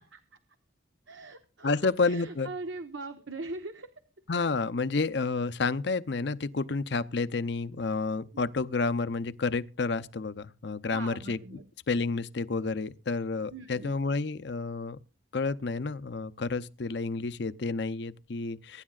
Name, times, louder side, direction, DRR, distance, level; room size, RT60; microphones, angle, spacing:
voice 1, 1.1-3.9 10.9-11.6 13.5-13.9, right 3 dB, 70° right, 1.1 m, -40 dB
voice 2, 1.6-2.5 4.3-11.4 11.9-15.0 15.3-18.8, left 4 dB, 60° left, 0.6 m, -30 dB
23.5 x 10.5 x 2.4 m
head